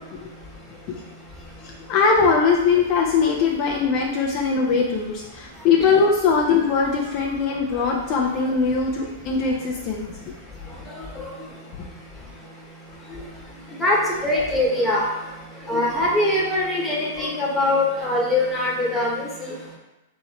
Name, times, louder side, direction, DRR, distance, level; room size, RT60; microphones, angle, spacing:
voice 1, 1.9-10.2, left 5 dB, 45° left, -1 dB, 0.6 m, -21 dB
voice 2, 13.8-15.1 15.7-19.5, left 2 dB, 5° left, -4 dB, 1.3 m, -22 dB
3.4 x 3.2 x 4.3 m, 0.99 s
hypercardioid pair, 120°, 0 cm